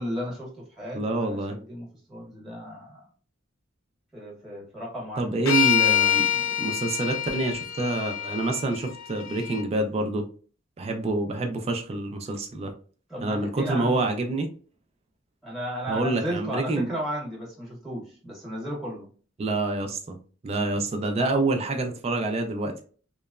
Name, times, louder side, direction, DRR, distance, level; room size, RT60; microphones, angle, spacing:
voice 1, 0.0-3.0 4.1-5.3 13.1-14.1 15.4-19.1, equal, ahead, -4 dB, 1.0 m, -34 dB
voice 2, 0.9-1.6 5.2-10.2 10.8-12.7 13.2-14.5 15.9-16.9 19.4-20.2 20.4-22.8, right 2 dB, 30° right, 4 dB, 0.3 m, -27 dB
sound 1, 5.5-9.6, left 10 dB, 85° left, 0.3 m, -26 dB
2.9 x 2.0 x 2.3 m, 0.40 s
head